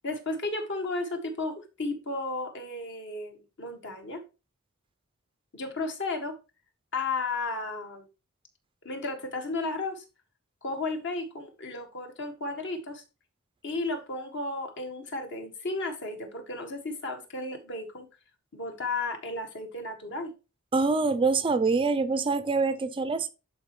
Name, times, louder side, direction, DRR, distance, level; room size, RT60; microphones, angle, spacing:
voice 1, 0.0-4.2 5.5-6.4 6.9-8.1 8.8-10.0 10.6-13.0 13.6-18.1 18.5-20.3, left 2 dB, 60° left, 1.7 m, -33 dB
voice 2, 20.7-23.3, right 4 dB, 25° right, 0.4 m, -25 dB
11.5 x 4.4 x 3.0 m
head